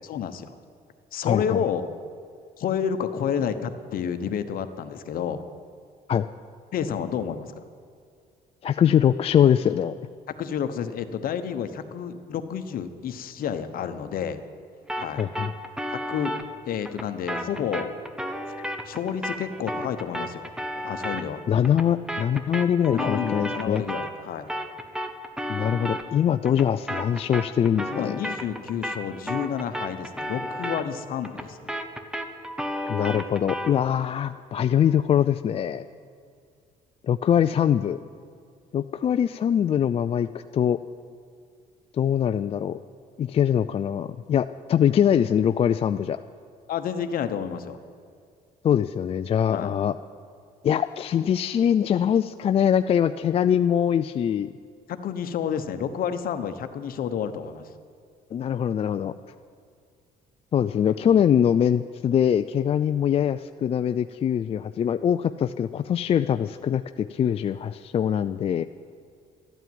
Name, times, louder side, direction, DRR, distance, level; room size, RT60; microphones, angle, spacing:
voice 1, 0.0-0.6 1.1-1.9 2.6-5.4 6.7-7.5 10.4-14.4 15.0-15.2 15.9-16.4 16.7-17.9 18.5-20.5 20.8-21.4 22.9-24.5 27.9-31.6 46.7-47.8 49.5-49.7 54.9-57.7, left 8 dB, 60° left, 10 dB, 1.0 m, -30 dB
voice 2, 1.3-1.6 6.1-6.3 8.6-10.0 15.2-15.5 21.5-23.8 25.5-28.2 32.9-35.8 37.0-38.0 38.7-40.8 41.9-42.8 43.2-46.2 48.6-50.0 50.6-54.5 58.3-59.1 60.5-68.6, left 9 dB, 35° left, 10 dB, 0.3 m, -23 dB
sound 1, 14.9-24.2 24.5-33.8, equal, 5° right, 1.0 m, -33 dB
13.0 x 9.1 x 9.3 m, 2.3 s
cardioid pair, 110°, 17 cm